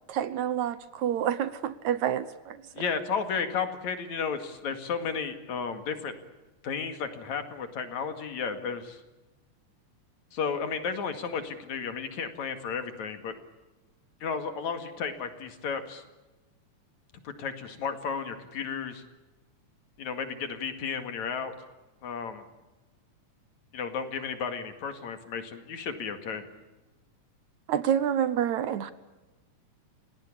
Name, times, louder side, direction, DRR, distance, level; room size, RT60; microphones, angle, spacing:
voice 1, 0.1-2.6 27.7-28.9, right 9 dB, 70° right, 15 dB, 2.3 m, -28 dB
voice 2, 2.7-6.1 6.6-9.0 10.3-13.3 14.2-16.0 17.3-19.0 20.0-21.5 22.0-22.4 23.7-26.5, left 6 dB, 65° left, 8 dB, 3.4 m, -33 dB
29.5 x 17.5 x 8.6 m, 1.1 s
omnidirectional pair, 3.6 m